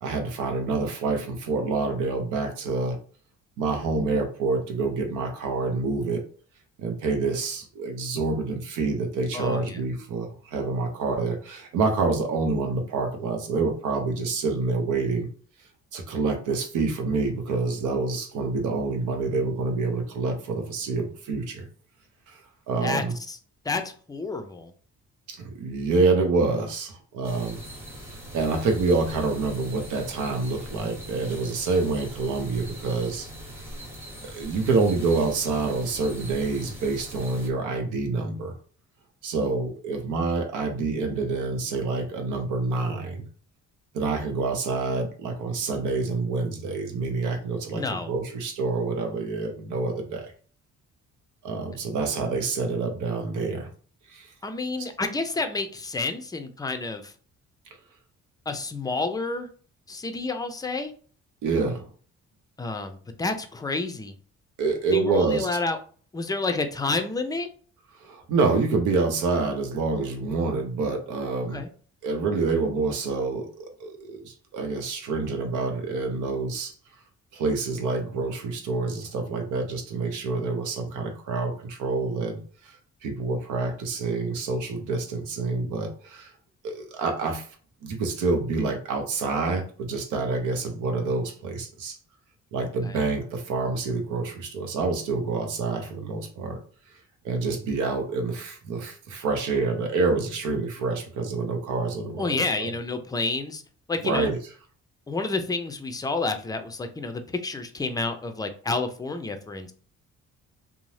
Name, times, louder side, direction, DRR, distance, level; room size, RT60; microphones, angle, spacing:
voice 1, 0.0-3.0 3.6-6.2 6.8-15.3 15.9-21.7 22.3-22.4 22.7-23.2 25.3-27.6 28.3-33.3 34.2-38.5 39.2-43.3 43.9-50.3 51.4-53.7 54.1-54.3 61.4-61.9 64.6-65.5 68.0-71.6 72.0-76.7 77.3-82.8 83.0-86.3 86.6-87.5 87.8-92.0 92.5-96.6 97.2-102.7 104.0-104.4, right 3 dB, 85° right, 5 dB, 0.7 m, -27 dB
voice 2, 9.3-9.8 22.8-23.4 23.7-23.8 24.1-24.7 47.7-48.1 54.4-57.1 58.5-59.5 59.9-60.9 62.6-64.1 64.9-65.8 66.1-67.5 71.5-71.7 92.8-93.0 102.2-103.6 103.9-104.3 105.1-109.7, left 3 dB, 15° left, 7 dB, 0.4 m, -29 dB
sound 1, 27.2-37.5, equal, 10° right, 0.8 m, -41 dB
2.6 x 2.0 x 3.1 m, 0.43 s
cardioid pair, 90°, 30 cm